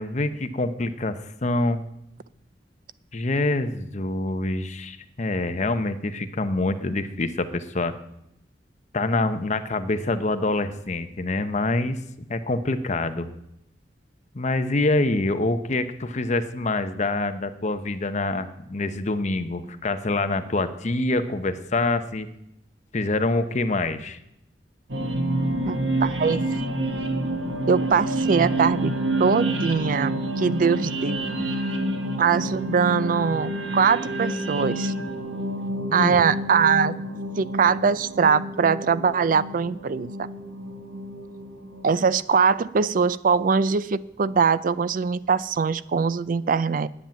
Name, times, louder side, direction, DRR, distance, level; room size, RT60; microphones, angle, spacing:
voice 1, 0.0-1.8 3.1-7.9 8.9-12.0 12.3-13.3 14.3-22.3 22.9-24.2 35.9-36.2, left 2 dB, 40° left, 10 dB, 0.8 m, -26 dB
sound 1, 24.9-42.0, right 1 dB, 90° right, 1.5 m, -28 dB
voice 2, 25.7-26.5 27.7-28.9 29.2-31.2 32.2-34.9 35.9-36.9 37.4-40.3 41.8-46.9, right 6 dB, 50° right, 17 dB, 0.4 m, -22 dB
10.0 x 7.3 x 9.2 m, 0.80 s
head